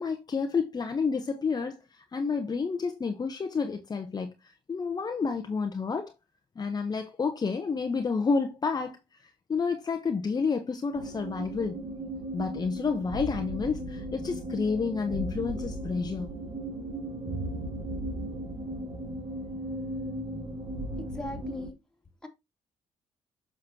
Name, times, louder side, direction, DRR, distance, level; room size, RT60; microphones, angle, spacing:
voice 1, 0.0-6.1 6.6-11.8 12.3-16.3, left 5 dB, 35° left, 0.9 m, -30 dB
sound 1, 10.9-21.7, right 1 dB, 50° right, 1.6 m, -36 dB
voice 2, 21.0-21.7 22.2-22.3, left 2 dB, 5° left, 2.8 m, -39 dB
7.4 x 6.1 x 2.8 m
supercardioid pair, 65°, 12 cm